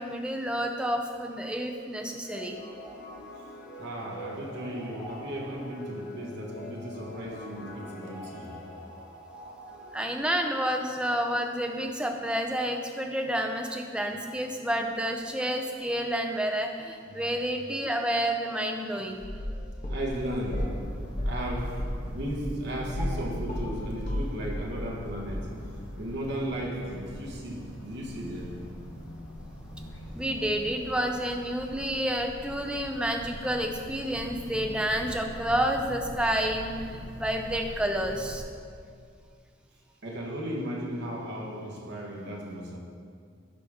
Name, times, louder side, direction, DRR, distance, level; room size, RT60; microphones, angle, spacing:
voice 1, 0.0-2.6 9.9-19.2 30.1-38.4, equal, 5° right, 0.4 m, -29 dB
sound 1, 2.2-10.2, equal, 50° left, 1.3 m, -44 dB
voice 2, 3.8-8.6 17.0-17.3 19.9-25.6 26.0-28.7 40.0-42.8, equal, 55° right, 1.2 m, -35 dB
sound 2, 19.2-20.8 21.2-23.2 23.5-25.0 25.3-25.4, equal, 35° left, 1.1 m, -32 dB
sound 3, 20.1-38.4, equal, 80° left, 1.6 m, -43 dB
11.0 x 5.0 x 3.6 m
head